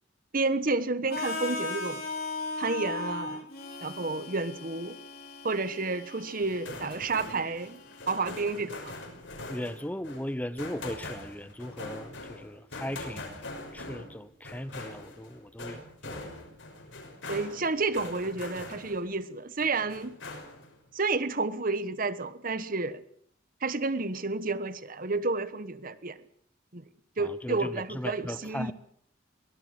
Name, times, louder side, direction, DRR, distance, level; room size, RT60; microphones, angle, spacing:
voice 1, 0.3-2.0 2.6-3.5 3.8-5.0 5.4-7.8 8.1-8.9 17.3-20.2 20.9-23.0 23.6-26.2 26.7-26.8 27.2-28.7, right 3 dB, 45° right, 1.2 m, -30 dB
Harmonica, 1.1-9.0, left 3 dB, 50° left, 4.2 m, -38 dB
sound 1, 6.4-19.2 19.6-20.8, left 2 dB, 75° left, 5.9 m, -43 dB
voice 2, 9.5-13.4 13.7-16.2 27.2-28.7, left 1 dB, 10° left, 0.8 m, -38 dB
23.0 x 18.0 x 7.7 m
head